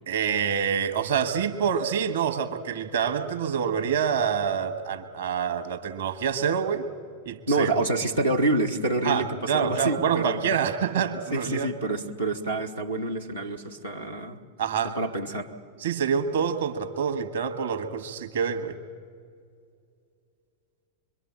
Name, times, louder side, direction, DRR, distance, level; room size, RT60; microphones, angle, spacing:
voice 1, 0.1-6.8 7.2-7.7 9.0-11.7 14.6-15.0 15.8-18.8, right 7 dB, 60° right, 8 dB, 1.5 m, -26 dB
voice 2, 7.5-10.4 11.3-14.4 14.8-15.5, right 2 dB, 85° right, -3 dB, 1.3 m, -27 dB
25.5 x 22.5 x 7.5 m, 2.3 s
figure-of-eight pair, 90°, 0 cm